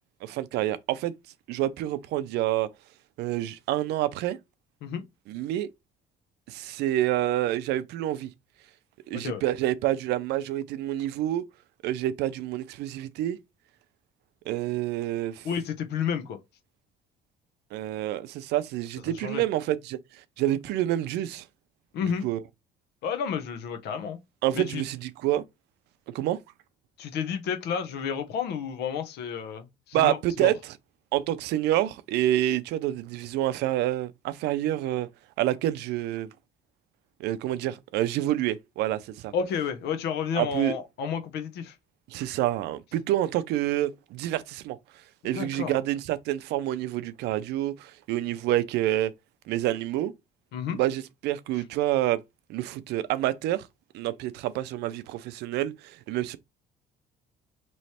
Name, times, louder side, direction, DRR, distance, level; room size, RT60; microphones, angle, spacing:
voice 1, 0.2-1.1 1.5-2.7 3.2-4.4 5.3-5.7 6.5-8.3 9.1-11.4 11.8-13.4 14.5-15.5 17.7-20.0 20.4-21.4 22.0-22.4 24.4-25.4 26.1-26.4 29.9-30.5 31.1-35.1 35.4-36.3 37.2-39.3 40.4-40.7 42.1-44.8 45.2-49.1 49.5-50.1 50.7-52.2 52.5-53.7 53.9-56.4, right 13 dB, 85° right, 0.5 m, -28 dB
voice 2, 15.4-16.4 19.1-19.4 21.9-22.2 23.0-24.2 24.5-24.8 27.0-30.5 39.3-41.8 45.3-45.8 50.5-50.8, left 7 dB, 75° left, 0.9 m, -31 dB
3.2 x 3.1 x 4.2 m
cardioid pair, 110°, 17 cm